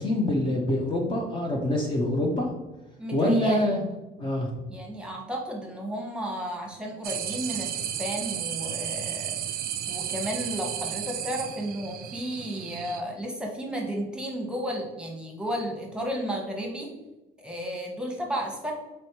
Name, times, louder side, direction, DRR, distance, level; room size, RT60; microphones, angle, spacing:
voice 1, 0.0-2.5 3.1-3.8 4.2-4.5, left 1 dB, 30° left, -1 dB, 0.6 m, -25 dB
voice 2, 3.0-3.8 4.7-9.4 9.9-16.9 17.4-18.7, equal, 5° right, 0 dB, 1.0 m, -33 dB
sound 1, 7.0-13.0, right 10 dB, 60° right, 0.4 m, -33 dB
4.2 x 3.1 x 2.8 m, 1.0 s
cardioid pair, 110°, 17 cm